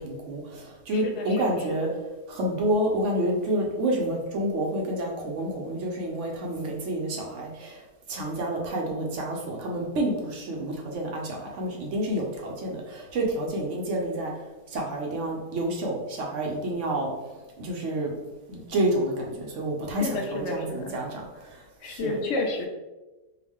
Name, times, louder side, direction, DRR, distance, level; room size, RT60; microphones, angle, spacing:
voice 1, 0.0-1.9 2.3-7.8 8.1-14.3 14.7-17.1 17.6-18.1 18.5-21.2 21.8-22.2, right 1 dB, 55° right, 0 dB, 1.0 m, -29 dB
voice 2, 0.9-1.9 20.0-20.9 21.8-22.7, left 2 dB, 65° left, 2 dB, 0.7 m, -31 dB
4.7 x 2.5 x 3.5 m, 1.1 s
omnidirectional pair, 1.7 m